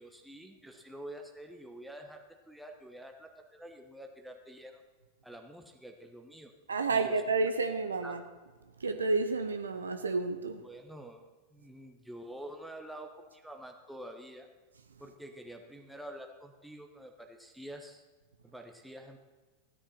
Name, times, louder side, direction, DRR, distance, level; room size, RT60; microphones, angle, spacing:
voice 1, 0.0-4.8 5.2-6.5 6.9-7.2 8.0-8.2 10.6-11.2 11.5-14.5 15.0-18.0 18.4-19.2, right 1 dB, ahead, 3 dB, 1.1 m, -47 dB
voice 2, 6.7-8.2 8.8-10.6, right 3 dB, 75° right, 7 dB, 0.8 m, -30 dB
16.0 x 9.9 x 4.3 m, 1.3 s
figure-of-eight pair, 90°, 0 cm